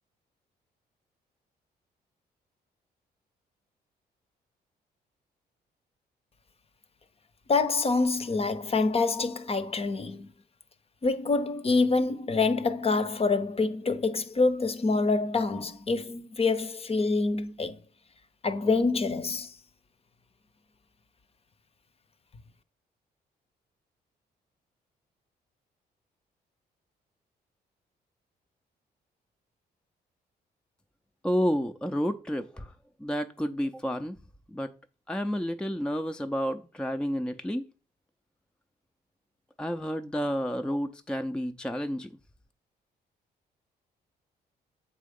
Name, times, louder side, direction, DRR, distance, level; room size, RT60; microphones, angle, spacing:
voice 1, 7.5-10.3 11.0-17.8 18.4-19.5, left 3 dB, 35° left, 0.8 m, -26 dB
voice 2, 31.2-32.7 33.0-34.2 34.5-34.7 35.1-37.7 39.6-42.2, equal, 5° left, 0.5 m, -30 dB
7.4 x 3.7 x 5.2 m
cardioid pair, 75°, 17 cm